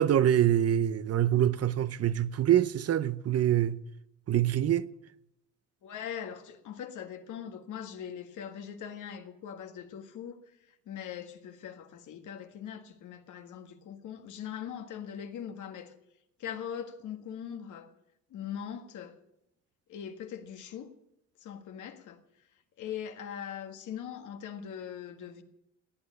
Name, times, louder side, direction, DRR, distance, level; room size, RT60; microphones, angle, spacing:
voice 1, 0.0-3.8 4.3-4.9, right 11 dB, 55° right, 0.8 m, -25 dB
voice 2, 5.8-10.4 10.7-15.9 16.4-17.9 18.3-19.1 19.9-20.9 21.4-22.2 22.8-25.4, left 8 dB, 80° left, 1.8 m, -41 dB
17.0 x 9.2 x 8.7 m
cardioid pair, 90°, 30 cm